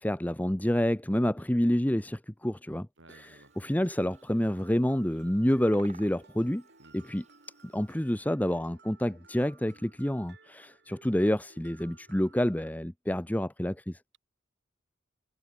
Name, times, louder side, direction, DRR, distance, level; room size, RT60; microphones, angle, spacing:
voice 1, 0.0-2.9 3.1-6.6 6.9-7.2 7.6-14.0, equal, 10° left, 0.8 m, -28 dB
voice 2, 3.0-3.5 6.8-7.1, right 1 dB, 75° right, 6.5 m, -56 dB
Mallet percussion, 3.1-12.7, right 3 dB, 60° right, 7.0 m, -59 dB
Bird vocalization bird call bird song, 3.2-8.2, right 5 dB, 35° right, 8.0 m, -59 dB
head